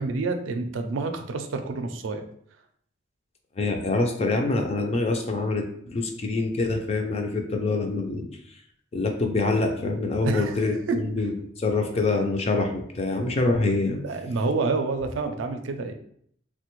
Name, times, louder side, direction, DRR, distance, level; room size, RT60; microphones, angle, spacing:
voice 1, 0.0-2.2 10.2-11.0 14.0-15.9, right 3 dB, 75° right, 6 dB, 0.4 m, -28 dB
voice 2, 3.6-8.3 8.9-11.3 11.6-14.0, left 3 dB, 30° left, 3 dB, 0.4 m, -25 dB
3.3 x 2.1 x 3.0 m, 0.65 s
head